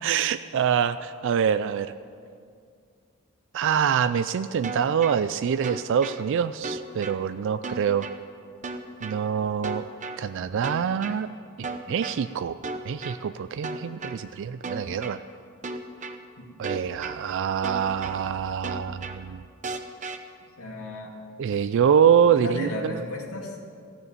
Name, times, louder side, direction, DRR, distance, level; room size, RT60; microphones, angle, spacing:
voice 1, 0.0-1.9 3.5-8.1 9.0-9.8 10.2-11.3 11.9-12.6 12.8-15.2 16.6-19.4 21.4-23.0, right 8 dB, 55° right, 12 dB, 0.3 m, -25 dB
sound 1, 4.6-5.2 5.6-6.2 6.6-7.2 7.6-8.2 8.6-9.2 9.6-10.2 10.6-11.2 11.6-12.2 12.6-13.2 13.6-14.2 14.6-15.2 15.6-16.2 16.6-17.2 17.6-18.2 18.6-19.2 19.6-20.2, right 3 dB, 35° right, 0.8 m, -34 dB
voice 2, 20.6-21.1 22.3-23.7, left 1 dB, 75° left, -2 dB, 2.5 m, -34 dB
15.5 x 6.8 x 8.8 m, 2.2 s
head